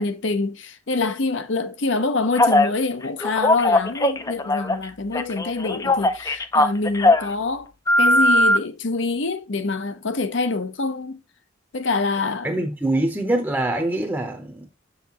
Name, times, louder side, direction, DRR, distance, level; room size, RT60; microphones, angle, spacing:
voice 1, 0.0-7.7 8.0-11.2 11.7-12.5, left 3 dB, 60° left, 0.8 m, -25 dB
Telephone, 2.4-2.7 3.2-4.9 5.1-7.3 7.9-8.6, left 1 dB, 15° left, 0.5 m, -19 dB
voice 2, 12.4-14.7, right 1 dB, 10° right, 0.8 m, -24 dB
6.5 x 5.8 x 2.9 m
head